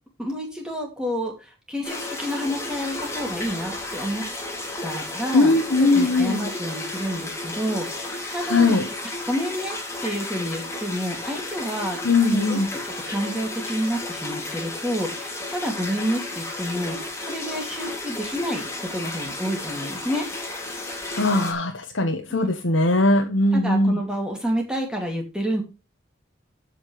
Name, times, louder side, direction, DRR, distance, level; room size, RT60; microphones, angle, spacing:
voice 1, 0.2-4.2 4.8-5.5 5.8-8.8 9.3-12.0 12.3-20.3 22.3-22.5 23.5-25.6, equal, 5° right, 2.3 m, -29 dB
sound 1, 1.8-21.5, left 2 dB, 15° left, 2.4 m, -33 dB
voice 2, 5.3-6.5 8.5-8.9 12.0-12.7 21.2-24.0, left 2 dB, 90° left, 1.3 m, -20 dB
14.5 x 5.8 x 3.2 m
head